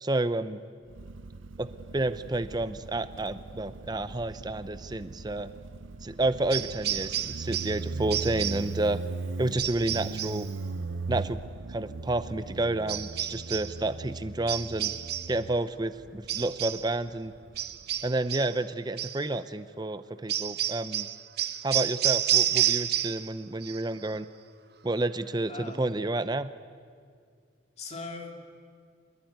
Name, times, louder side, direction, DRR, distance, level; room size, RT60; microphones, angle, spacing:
voice 1, 0.0-0.6 1.6-1.7 1.9-5.5 6.0-9.0 9.4-10.5 11.1-11.4 11.7-14.9 15.3-17.3 18.0-21.1 21.6-24.3 24.8-26.5, right 2 dB, 20° right, 12 dB, 0.6 m, -30 dB
Motorcycle, 0.9-18.1, right 3 dB, 85° right, 0.7 m, -39 dB
sound 1, 6.5-7.8 8.1-8.7 9.6-10.4 12.9-13.7 14.5-15.4 16.3-16.9 17.6-18.6 19.0-19.2 20.3-23.3 23.6-24.1, right 11 dB, 55° right, 0.8 m, -30 dB
voice 2, 25.5-26.0 27.8-28.4, left 3 dB, 35° left, 3 dB, 2.9 m, -40 dB
23.5 x 21.5 x 9.3 m, 2.1 s
head